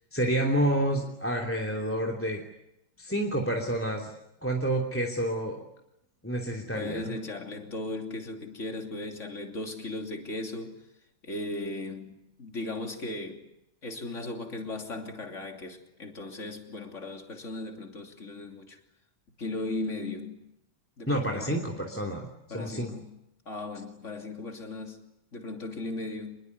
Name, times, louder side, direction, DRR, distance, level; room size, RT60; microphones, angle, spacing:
voice 1, 0.1-2.4 3.0-4.1 4.4-5.6 6.2-7.1 21.1-22.2 22.5-22.9, right 1 dB, 5° left, 2.9 m, -29 dB
voice 2, 6.7-10.8 11.2-13.5 13.8-18.8 19.4-20.5 21.0-21.7 22.5-23.2 23.4-25.0 25.3-26.4, left 2 dB, 35° left, 3.3 m, -37 dB
26.5 x 21.5 x 9.7 m
omnidirectional pair, 2.1 m